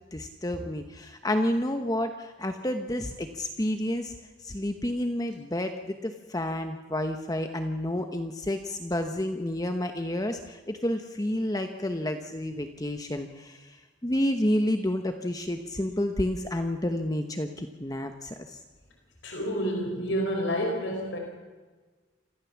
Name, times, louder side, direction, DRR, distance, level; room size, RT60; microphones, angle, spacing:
voice 1, 0.0-4.1 4.4-13.8 14.0-18.6, left 1 dB, 20° left, 6 dB, 1.1 m, -30 dB
voice 2, 19.2-21.2, equal, 90° left, 1 dB, 4.9 m, -29 dB
26.0 x 15.0 x 7.3 m, 1.3 s
head